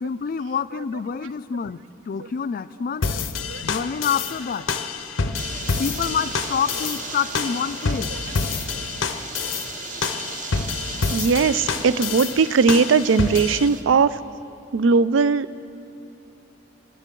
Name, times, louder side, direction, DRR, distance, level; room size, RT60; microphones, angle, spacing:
voice 1, 0.0-3.0 3.6-4.7 5.8-8.1, left 6 dB, 45° left, 14 dB, 0.3 m, -27 dB
sound 1, 3.0-13.7, left 5 dB, 85° left, 0.7 m, -28 dB
sound 2, 5.4-13.8, right 5 dB, 40° right, 0.7 m, -36 dB
voice 2, 11.1-14.2 14.7-15.5, right 5 dB, 70° right, 16 dB, 0.4 m, -19 dB
28.0 x 9.8 x 3.8 m, 2.8 s
head